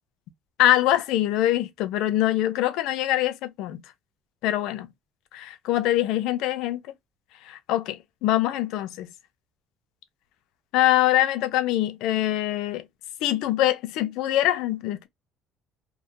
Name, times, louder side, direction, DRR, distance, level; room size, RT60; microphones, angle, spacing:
voice 1, 0.6-3.8 4.4-4.9 5.3-6.8 7.4-9.1 10.7-12.9 13.2-15.1, left 13 dB, 75° left, 0.4 m, -24 dB
2.3 x 2.1 x 2.7 m
cardioid pair, 115°, 0 cm